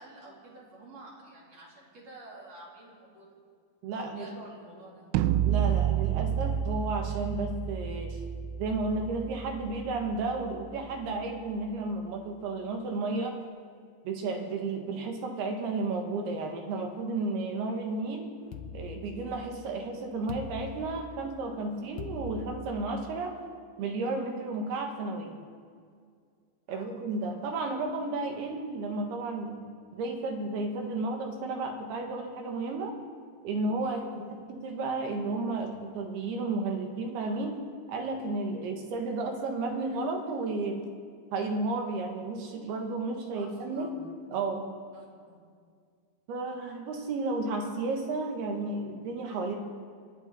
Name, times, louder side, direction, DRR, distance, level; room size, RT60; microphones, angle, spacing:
voice 1, 0.0-3.3 3.9-5.1 26.7-27.0 33.8-34.0 43.3-44.0 44.9-45.4, right 2 dB, 40° right, -4 dB, 3.5 m, -49 dB
voice 2, 3.8-4.3 5.4-8.2 8.6-13.4 14.0-18.3 18.7-23.4 23.8-25.4 26.7-29.6 29.9-33.0 33.4-37.6 37.9-40.8 41.3-43.9 44.3-44.7 46.3-49.6, right 3 dB, 70° right, 3 dB, 3.1 m, -33 dB
sound 1, 5.1-11.1, right 10 dB, 85° right, 2.8 m, -30 dB
sound 2, 18.5-19.6 20.3-21.3 22.0-23.1, left 5 dB, 85° left, 1.9 m, -42 dB
28.5 x 10.5 x 4.0 m, 2.1 s
omnidirectional pair, 5.0 m